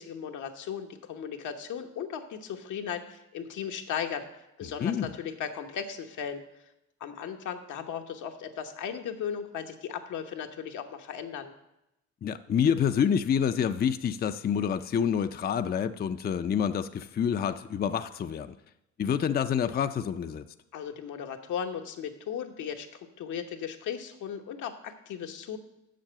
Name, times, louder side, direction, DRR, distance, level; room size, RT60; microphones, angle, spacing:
voice 1, 0.0-4.3 4.6-6.4 7.0-11.5 20.7-22.9 23.2-25.6, left 8 dB, 80° left, 5 dB, 1.1 m, -36 dB
voice 2, 4.8-5.1 12.2-18.5 19.0-20.4, left 8 dB, 30° left, 10 dB, 0.4 m, -27 dB
7.5 x 6.5 x 7.5 m, 0.88 s
cardioid pair, 90°, 30 cm